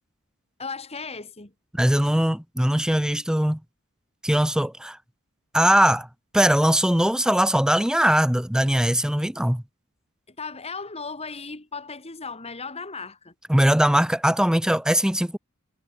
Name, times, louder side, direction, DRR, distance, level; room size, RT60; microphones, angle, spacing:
voice 1, 0.6-1.5 10.3-13.3, left 4 dB, 30° left, 2.5 m, -36 dB
voice 2, 1.7-3.6 4.2-5.0 5.5-6.1 6.3-9.6 13.5-15.4, equal, 5° right, 0.9 m, -20 dB
head